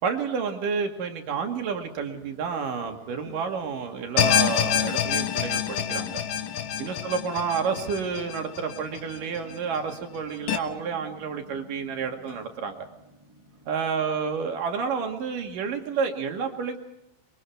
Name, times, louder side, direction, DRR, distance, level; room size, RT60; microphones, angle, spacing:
voice 1, 0.0-6.2 6.8-12.8 13.7-16.8, right 6 dB, 75° right, 4 dB, 3.7 m, -30 dB
sound 1, 1.3-15.9, right 2 dB, 10° right, 2.1 m, -51 dB
sound 2, 4.2-9.4 9.8-9.9 10.5-10.6, left 9 dB, 80° left, 2.8 m, -26 dB
24.5 x 23.5 x 4.6 m, 0.84 s
omnidirectional pair, 3.9 m